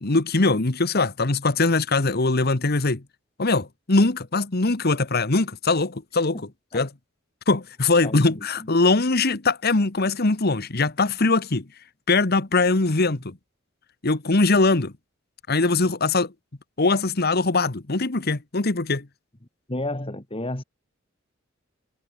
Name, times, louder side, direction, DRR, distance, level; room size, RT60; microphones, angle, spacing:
voice 1, 0.0-3.0 3.4-6.4 6.7-6.9 7.5-11.7 12.1-13.4 14.0-14.9 15.5-16.3 16.8-19.1, left 3 dB, 55° left, 1.4 m, -21 dB
voice 2, 8.0-8.7 19.7-20.6, left 1 dB, 30° left, 2.2 m, -32 dB
head